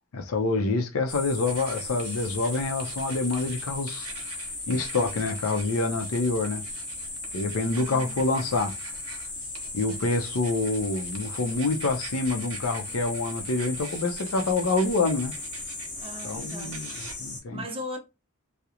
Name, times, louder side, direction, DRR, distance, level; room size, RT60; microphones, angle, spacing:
voice 1, 0.1-4.1 4.7-6.6 7.3-8.7 9.7-15.3 16.2-16.9 17.2-17.6, left 3 dB, 85° left, 0.5 m, -27 dB
sound 1, 1.1-17.4, left 2 dB, 35° left, 0.7 m, -37 dB
sound 2, 1.5-17.1, right 6 dB, 80° right, 0.5 m, -46 dB
voice 2, 7.6-8.1 10.0-10.2 16.0-16.9 17.5-18.0, left 1 dB, 25° right, 0.4 m, -38 dB
2.4 x 2.0 x 2.8 m
head